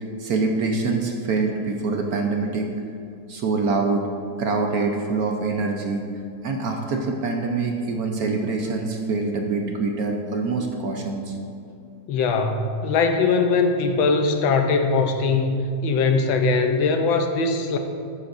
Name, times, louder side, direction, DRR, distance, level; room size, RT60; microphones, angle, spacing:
voice 1, 0.2-2.7 3.3-4.1 4.4-6.0 6.4-11.3, right 3 dB, 60° right, 2 dB, 1.0 m, -25 dB
voice 2, 12.1-15.6 15.8-17.8, left 4 dB, 80° left, 5 dB, 1.5 m, -21 dB
13.5 x 9.4 x 2.6 m, 2.5 s
omnidirectional pair, 2.1 m